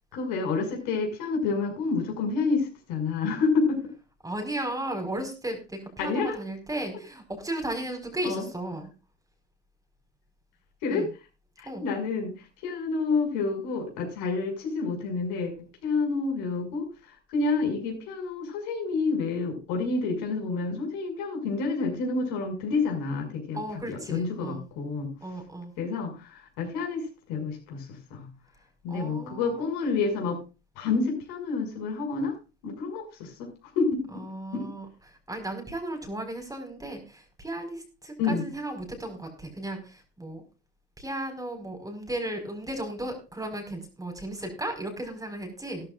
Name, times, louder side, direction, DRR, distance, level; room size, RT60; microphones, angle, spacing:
voice 1, 0.1-3.9 6.0-6.4 8.2-8.4 10.8-11.1 11.6-25.1 25.8-28.3 28.8-30.4 30.8-32.3 32.6-34.0 34.5-34.7 38.2-38.4, left 4 dB, 55° left, 2 dB, 6.0 m, -29 dB
voice 2, 4.2-8.9 10.9-11.1 11.6-11.8 23.5-24.7 25.2-25.7 28.9-29.7 34.1-34.8 35.3-40.4 41.0-45.9, right 1 dB, 10° right, 4 dB, 4.9 m, -35 dB
17.0 x 13.5 x 2.5 m, 0.31 s
figure-of-eight pair, 70°, 35 cm